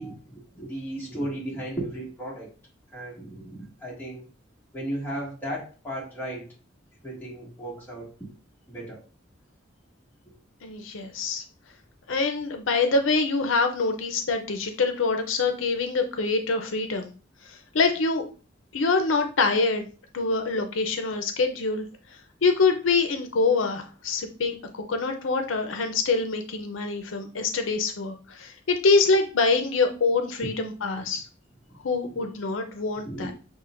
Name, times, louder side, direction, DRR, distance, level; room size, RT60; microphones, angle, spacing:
voice 1, 0.0-2.5 2.9-4.2 4.7-6.5 7.0-8.3 8.7-9.1 31.7-31.8 32.0-32.2 33.0-33.3, right 1 dB, 10° left, -6 dB, 1.8 m, -35 dB
voice 2, 10.6-11.4 12.1-17.1 17.4-18.3 18.7-19.9 20.1-21.9 22.4-31.3 31.8-33.3, left 4 dB, 85° left, 5 dB, 0.6 m, -25 dB
7.2 x 2.5 x 2.5 m, 0.36 s
head